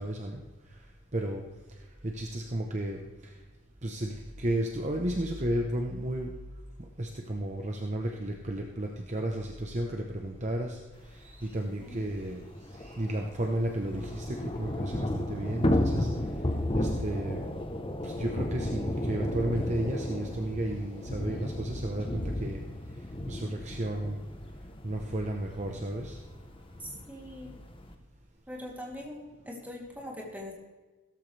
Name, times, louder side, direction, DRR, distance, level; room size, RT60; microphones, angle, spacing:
voice 1, 0.0-1.4 1.7-3.4 3.8-6.3 6.8-16.4 16.7-17.4 18.0-22.6 22.9-24.2 24.8-26.2, right 1 dB, 35° right, 2 dB, 1.0 m, -33 dB
Thunder / Rain, 11.3-11.4 11.7-11.8 12.1-27.9, left 1 dB, 25° left, 0.9 m, -34 dB
voice 2, 26.8-27.5 28.5-29.2 29.4-30.5, left 1 dB, 10° right, -3 dB, 3.0 m, -41 dB
16.0 x 14.0 x 3.4 m, 1.2 s
head